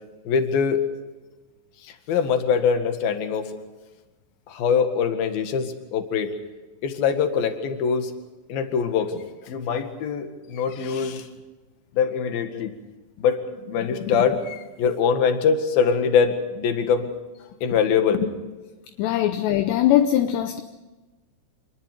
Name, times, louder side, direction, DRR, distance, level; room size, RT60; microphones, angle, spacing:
voice 1, 0.3-0.8 1.8-3.5 4.5-6.3 6.8-8.1 8.5-11.3 12.0-12.7 13.2-17.1 17.6-18.3, left 6 dB, 60° left, 3.3 m, -23 dB
voice 2, 19.0-20.6, left 12 dB, 75° left, 2.9 m, -21 dB
27.0 x 21.5 x 5.3 m
omnidirectional pair, 5.5 m